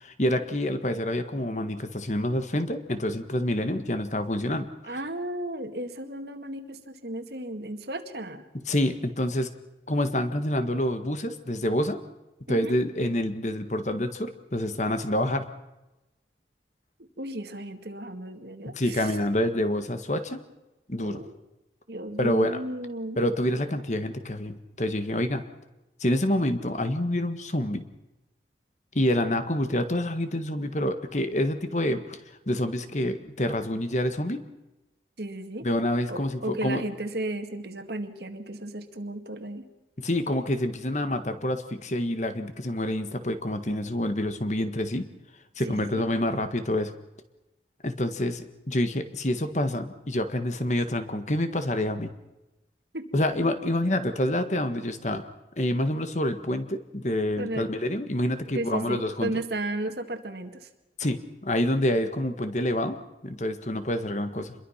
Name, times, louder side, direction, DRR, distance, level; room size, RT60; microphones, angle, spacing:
voice 1, 0.0-4.9 8.7-9.5 9.9-12.0 12.5-15.5 18.7-20.4 20.9-21.2 22.2-22.6 23.2-25.4 26.0-27.8 28.9-32.2 32.5-34.4 35.6-36.8 40.0-45.1 45.6-46.9 47.8-52.1 53.1-55.2 55.6-59.3 61.0-63.0 63.2-64.5, left 1 dB, 40° left, 9 dB, 1.6 m, -27 dB
voice 2, 4.8-8.5 12.5-12.8 17.2-19.1 21.0-21.4 21.9-23.2 35.2-35.7 36.1-39.7 45.7-46.1 52.9-53.2 57.4-57.7 58.5-60.7, right 1 dB, 65° right, 8 dB, 2.0 m, -34 dB
27.0 x 22.0 x 5.8 m, 0.99 s
head